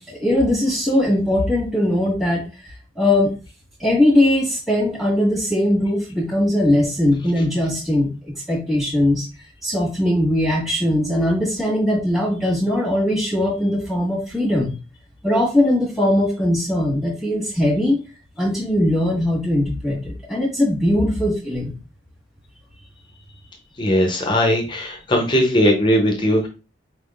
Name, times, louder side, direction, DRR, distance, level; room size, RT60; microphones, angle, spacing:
voice 1, 0.0-3.3 3.8-8.1 8.5-9.2 9.6-14.8 15.2-18.0 18.4-21.8, left 1 dB, ahead, -7 dB, 1.5 m, -20 dB
voice 2, 23.8-26.5, equal, 25° left, 1 dB, 0.7 m, -18 dB
4.8 x 3.5 x 2.4 m, 0.33 s
head